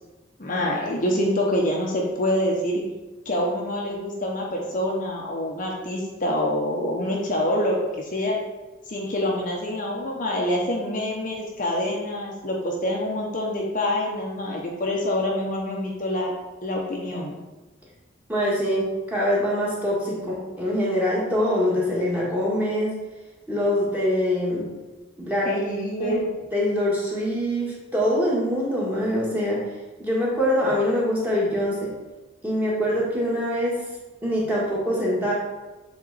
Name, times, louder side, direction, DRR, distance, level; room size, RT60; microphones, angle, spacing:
voice 1, 0.4-2.8 3.3-8.4 8.9-16.3 16.6-17.3 25.4-26.2, left 1 dB, 40° left, -2 dB, 0.9 m, -26 dB
voice 2, 18.3-22.9 23.5-24.6 25.2-25.5 26.0-26.2 26.5-29.6 30.0-31.9 32.4-33.7 34.2-35.3, equal, 10° right, -6 dB, 1.7 m, -24 dB
7.5 x 4.0 x 4.1 m, 1.1 s
head